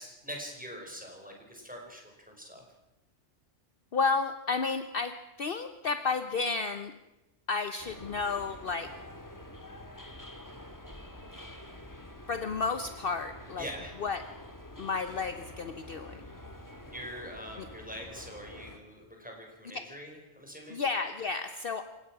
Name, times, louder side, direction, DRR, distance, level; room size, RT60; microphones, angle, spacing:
voice 1, 0.0-2.6 13.6-14.0 16.8-20.8, equal, 5° right, 1 dB, 4.7 m, -44 dB
voice 2, 3.9-6.9 7.5-8.9 12.3-13.7 14.0-14.2 14.8-16.2 19.7-19.8 20.7-21.8, left 4 dB, 50° left, 9 dB, 1.0 m, -32 dB
sound 1, 7.8-18.8, left 1 dB, 15° left, 1.7 m, -47 dB
27.5 x 16.5 x 6.0 m, 1.0 s
omnidirectional pair, 1.3 m